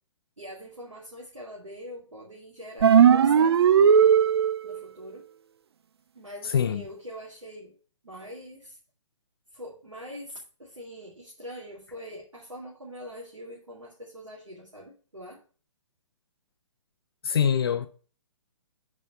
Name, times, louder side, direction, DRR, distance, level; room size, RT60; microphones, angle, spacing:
voice 1, 0.4-4.0 4.6-5.3 6.1-7.7 8.0-8.8 9.5-15.4, equal, 75° right, 2.4 m, -43 dB
sound 1, 2.8-4.8, right 7 dB, 55° right, 0.4 m, -17 dB
voice 2, 6.4-6.8 17.2-17.9, left 8 dB, 50° left, 0.7 m, -24 dB
8.3 x 4.4 x 5.5 m
figure-of-eight pair, 125°, 16 cm